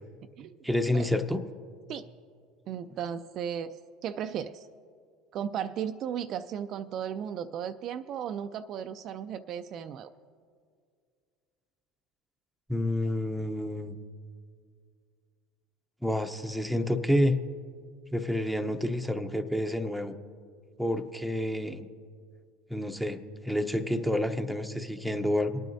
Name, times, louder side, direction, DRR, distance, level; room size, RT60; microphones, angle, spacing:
voice 1, 0.6-1.4 12.7-13.9 16.0-17.4 18.1-20.1 20.8-21.9 22.7-23.2 23.4-25.6, left 1 dB, ahead, 6 dB, 0.8 m, -29 dB
voice 2, 2.7-3.7 4.0-4.7 5.3-10.1, right 8 dB, 50° right, 9 dB, 0.4 m, -35 dB
25.5 x 9.1 x 2.7 m, 2.1 s
hypercardioid pair, 85°, 0 cm